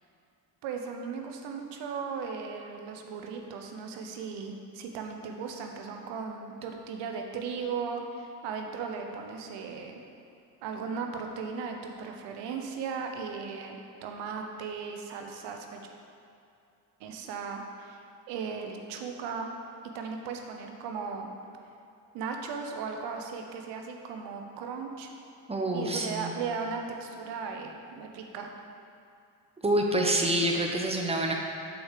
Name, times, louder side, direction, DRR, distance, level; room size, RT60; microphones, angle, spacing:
voice 1, 0.6-10.0 10.6-15.8 17.0-18.0 18.3-19.5 19.9-21.3 22.1-25.1 25.7-28.5, right 5 dB, 85° right, 3 dB, 0.8 m, -37 dB
voice 2, 25.5-26.3 29.6-31.3, right 1 dB, 15° right, 1 dB, 1.0 m, -27 dB
6.1 x 4.9 x 6.6 m, 2.6 s
supercardioid pair, 80°, 42 cm